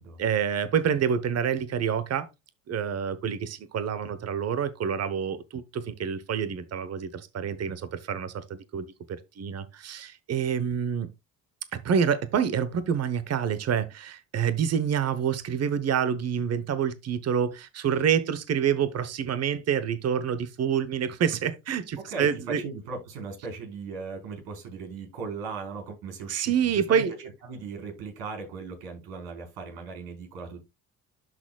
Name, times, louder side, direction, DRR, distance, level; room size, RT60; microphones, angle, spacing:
voice 1, 0.2-2.3 2.7-11.1 11.7-22.6 26.3-27.1, right 8 dB, 45° right, 1.0 m, -27 dB
voice 2, 22.0-30.6, right 4 dB, 70° right, 4.4 m, -38 dB
12.0 x 4.3 x 2.3 m
supercardioid pair, 70°, 37 cm